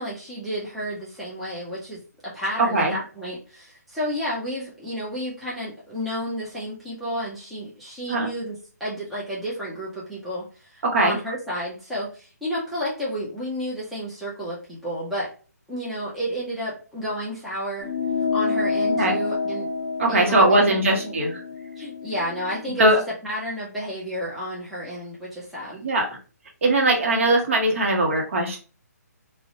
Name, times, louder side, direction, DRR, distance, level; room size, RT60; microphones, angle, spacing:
voice 1, 0.0-15.3 15.7-17.9 18.3-19.7 20.1-21.1 21.8-25.8, equal, ahead, -9 dB, 0.5 m, -31 dB
voice 2, 2.6-2.9 8.1-8.3 10.8-11.2 18.9-19.1 20.0-21.3 22.8-23.0 25.8-26.1 26.6-28.6, right 1 dB, 50° right, 1 dB, 0.8 m, -20 dB
sound 1, 17.8-22.6, left 4 dB, 20° left, 1.0 m, -28 dB
2.5 x 2.1 x 2.6 m, 0.36 s
figure-of-eight pair, 145°, 9 cm